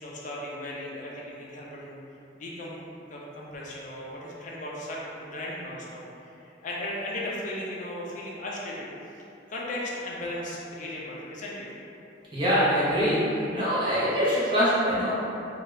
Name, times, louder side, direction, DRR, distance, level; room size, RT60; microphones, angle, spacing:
voice 1, 0.0-2.0 2.3-6.3 6.6-8.9 9.5-11.7 14.1-14.2, left 1 dB, 45° left, -4 dB, 0.5 m, -36 dB
voice 2, 12.3-13.2 13.5-15.1, equal, 25° right, -11 dB, 0.9 m, -23 dB
2.7 x 2.3 x 3.1 m, 2.8 s
head